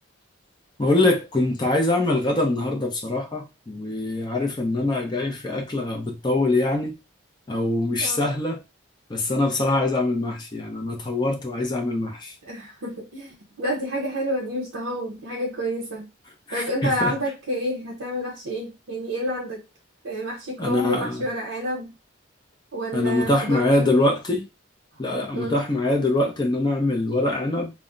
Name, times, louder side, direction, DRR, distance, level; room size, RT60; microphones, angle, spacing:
voice 1, 0.8-6.9 7.5-8.6 9.1-12.3 16.5-17.1 20.6-21.2 22.9-24.4 25.0-27.7, left 2 dB, 20° left, 0.4 m, -23 dB
voice 2, 12.4-16.1 16.5-19.6 20.0-21.9 22.7-23.7 24.0-24.1 25.3-25.6, equal, 75° right, 0.7 m, -29 dB
2.1 x 2.0 x 3.7 m
head